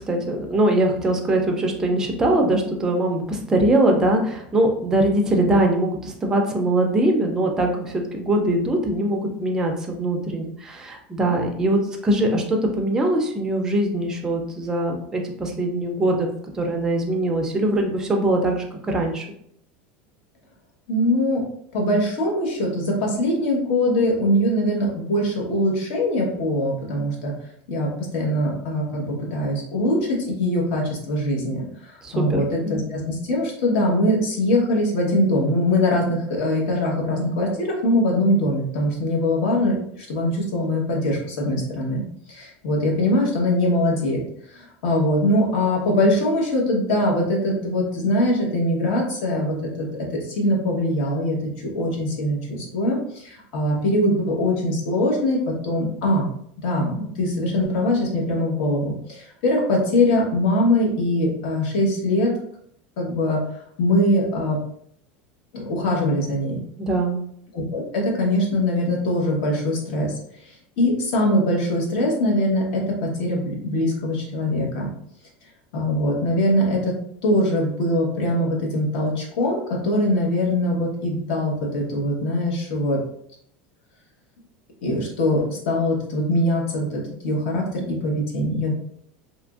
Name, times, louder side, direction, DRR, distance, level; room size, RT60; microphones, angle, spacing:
voice 1, 0.1-16.3 16.5-19.3 32.0-32.8 66.8-67.2, right 1 dB, 10° right, 2 dB, 0.4 m, -22 dB
voice 2, 20.9-21.4 21.7-27.3 27.7-42.0 42.3-44.2 44.5-49.9 50.1-56.3 56.6-62.3 63.0-63.4 63.8-64.6 65.5-66.6 67.5-70.1 70.4-74.9 75.7-76.9 77.2-83.0 84.8-88.7, left 1 dB, 65° left, -2 dB, 1.0 m, -22 dB
2.9 x 2.5 x 2.3 m, 0.67 s
supercardioid pair, 170°, 5 cm